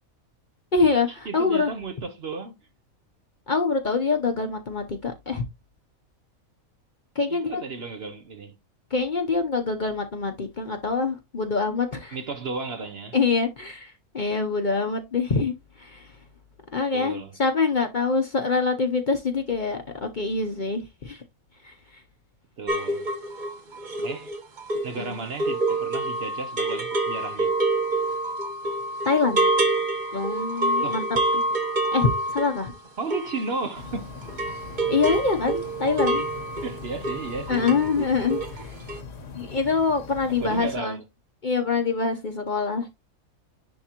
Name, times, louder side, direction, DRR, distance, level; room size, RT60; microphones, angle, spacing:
voice 1, 0.7-1.7 3.5-5.4 7.2-7.6 8.9-12.2 13.1-15.5 15.8-16.0 16.7-21.2 25.0-25.2 29.1-29.5 30.1-31.0 31.9-32.7 34.9-36.2 37.5-38.7 39.3-41.0 41.4-42.9, left 4 dB, 40° left, 0.8 m, -25 dB
voice 2, 1.3-2.6 7.3-8.6 12.1-13.2 16.9-17.4 22.6-23.1 24.0-24.3 24.8-27.5 30.8-31.1 33.0-34.1 36.6-38.2 40.4-41.0, right 4 dB, 55° right, 0.9 m, -34 dB
sound 1, 22.7-34.0 34.2-37.9 38.2-38.6 38.9-39.0, right 2 dB, 35° right, 1.2 m, -27 dB
sound 2, 33.7-40.8, left 4 dB, 60° left, 1.5 m, -41 dB
10.0 x 3.4 x 2.9 m
omnidirectional pair, 1.4 m